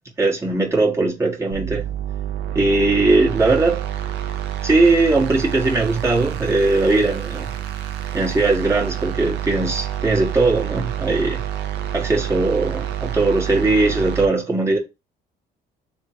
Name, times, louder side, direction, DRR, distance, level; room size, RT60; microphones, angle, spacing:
voice 1, 0.2-1.8 2.5-3.9 4.6-7.5 8.1-11.4 11.9-14.8, right 2 dB, 15° right, 1.2 m, -19 dB
sound 1, 1.5-14.3, right 10 dB, 85° right, 0.7 m, -28 dB
3.6 x 3.0 x 4.3 m
cardioid pair, 110°, 17 cm